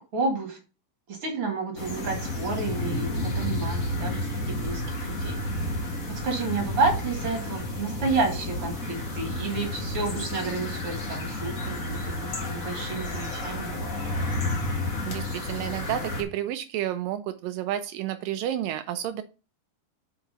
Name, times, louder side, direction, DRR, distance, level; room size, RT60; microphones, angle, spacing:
voice 1, 0.1-0.6 1.1-5.4 6.2-13.8, right 3 dB, 45° right, 3 dB, 2.2 m, -30 dB
sound 1, 1.8-16.2, left 1 dB, 45° left, 1.0 m, -31 dB
voice 2, 15.1-19.2, right 12 dB, 80° right, 10 dB, 2.0 m, -31 dB
5.9 x 5.8 x 5.4 m, 0.32 s
omnidirectional pair, 4.4 m